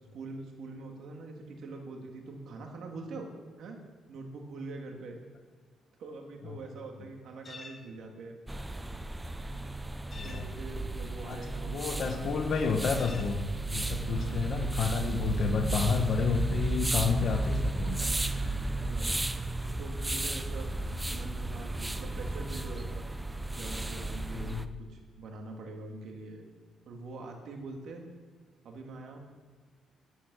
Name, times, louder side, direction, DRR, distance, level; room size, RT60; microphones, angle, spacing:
voice 1, 0.1-3.3 3.6-3.8 4.1-5.2 6.0-8.4 10.2-12.3 14.1-14.5 18.7-19.2 19.8-23.1 23.6-26.4 26.8-28.0 28.6-29.2, right 3 dB, 70° right, 2 dB, 2.4 m, -44 dB
sound 1, 7.4-7.8 10.1-10.5 13.0-13.3, left 3 dB, 40° left, 1.5 m, -46 dB
sound 2, 8.5-24.7, right 2 dB, 10° right, 0.7 m, -34 dB
voice 2, 10.1-10.5 11.2-13.4 13.7-18.3 24.3-24.7, left 5 dB, 60° left, 3 dB, 1.1 m, -31 dB
10.0 x 9.9 x 6.3 m, 1.5 s
cardioid pair, 90°, 0 cm